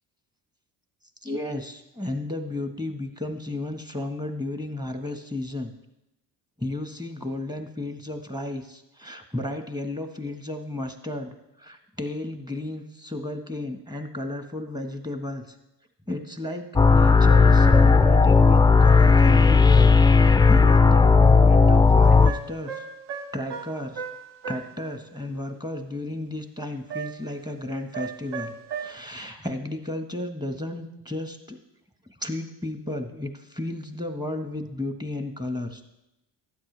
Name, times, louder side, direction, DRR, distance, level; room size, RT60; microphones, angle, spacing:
voice 1, 1.2-5.7 6.6-15.5 16.1-22.8 23.3-24.0 24.5-31.6 32.2-35.8, left 1 dB, 10° right, 6 dB, 1.4 m, -33 dB
sound 1, 16.8-22.3, left 4 dB, 10° left, 0.4 m, -15 dB
sound 2, 22.1-24.7 26.9-27.4 27.9-28.9, right 6 dB, 60° right, 1.1 m, -36 dB
12.5 x 8.9 x 3.4 m, 0.91 s
supercardioid pair, 55°, 47 cm